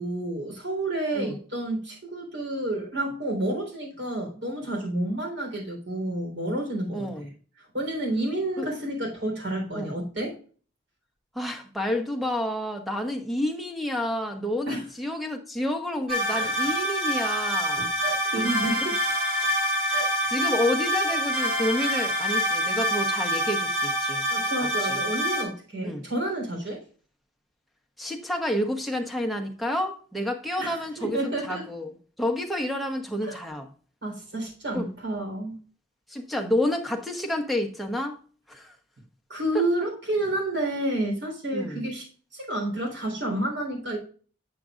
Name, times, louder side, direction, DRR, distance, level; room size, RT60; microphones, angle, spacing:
voice 1, 0.0-7.1 7.7-10.3 14.7-14.8 16.3-16.7 17.8-19.0 19.9-20.1 24.3-26.8 30.6-31.6 33.2-33.4 34.0-35.6 39.3-42.0 42.3-44.0, right 1 dB, 70° right, 4.0 m, -30 dB
voice 2, 6.9-7.3 8.6-8.7 9.7-9.9 11.3-17.9 18.8-18.9 20.3-24.2 24.8-25.0 25.8-26.1 28.0-33.7 34.7-34.9 36.1-38.2 38.5-38.7 39.5-39.6 41.5-41.8, left 1 dB, ahead, 1.0 m, -29 dB
sound 1, 16.1-25.4, equal, 35° right, 2.8 m, -26 dB
8.5 x 7.4 x 2.5 m
head